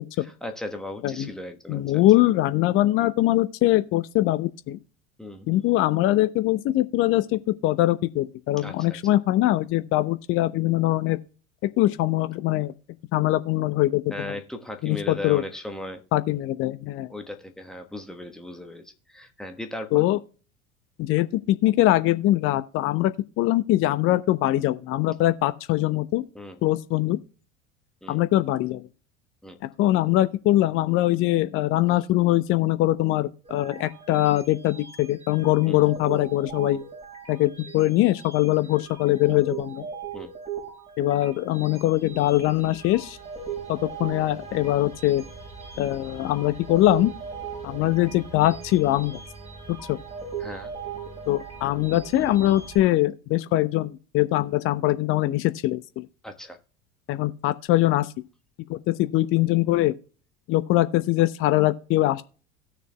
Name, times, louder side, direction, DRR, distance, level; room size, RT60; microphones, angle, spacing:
voice 1, 0.2-2.0 5.2-5.7 8.6-9.0 14.1-16.0 17.1-20.1 26.3-26.6 28.0-28.2 29.4-29.6 35.6-35.9 40.1-40.3 50.4-50.7 56.2-56.6, left 1 dB, ahead, 1.2 m, -37 dB
voice 2, 1.7-4.8 5.5-11.2 11.6-12.7 13.1-14.3 14.8-15.4 16.1-17.1 19.9-20.2 21.0-26.2 26.6-27.2 28.1-28.8 29.8-36.8 37.3-39.9 41.0-43.2 43.7-45.2 45.8-47.1 47.6-49.2 49.9-50.0 51.3-56.1 57.1-58.1 58.7-59.9 60.5-62.2, left 16 dB, 35° left, 0.6 m, -22 dB
sound 1, 33.4-52.8, right 6 dB, 20° right, 5.1 m, -39 dB
17.5 x 6.7 x 2.2 m
figure-of-eight pair, 70°, 38 cm